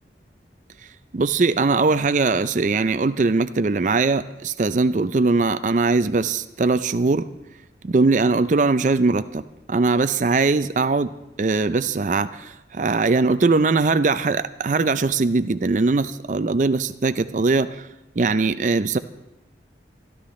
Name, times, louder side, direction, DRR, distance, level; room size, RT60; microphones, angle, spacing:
voice 1, 1.1-7.3 7.8-9.4 9.7-11.1 11.4-17.8 18.2-19.0, right 3 dB, 45° right, 12 dB, 0.4 m, -20 dB
25.5 x 11.5 x 3.2 m, 0.95 s
head